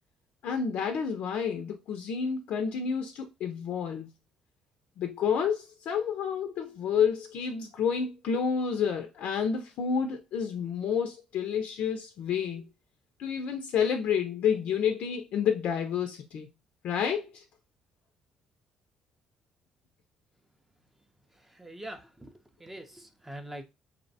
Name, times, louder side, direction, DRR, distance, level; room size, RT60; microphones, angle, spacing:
voice 1, 0.4-4.1 5.0-12.7 13.2-16.5 16.8-17.4, left 7 dB, 70° left, 0.4 m, -29 dB
voice 2, 21.6-22.3 22.6-23.6, right 1 dB, 10° right, 0.4 m, -43 dB
2.6 x 2.1 x 2.6 m
cardioid pair, 90°, 2 cm